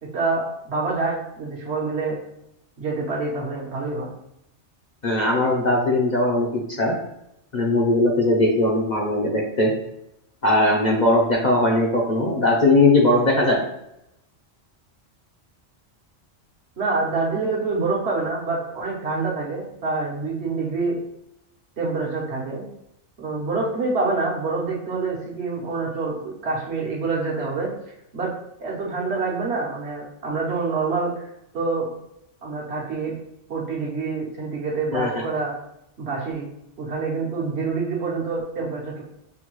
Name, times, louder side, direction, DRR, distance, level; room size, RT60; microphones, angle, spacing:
voice 1, 0.0-2.2 2.8-4.1 16.8-21.0 21.8-22.6 23.2-27.7 28.1-28.3 28.6-31.9 32.4-33.1 33.5-35.5 36.0-36.5 36.8-39.0, right 3 dB, 60° right, -3 dB, 1.2 m, -26 dB
voice 2, 5.0-6.9 7.5-9.7 10.4-13.6 34.9-35.1, left 2 dB, 45° left, -2 dB, 0.7 m, -19 dB
5.7 x 2.2 x 3.0 m, 0.80 s
omnidirectional pair, 1.3 m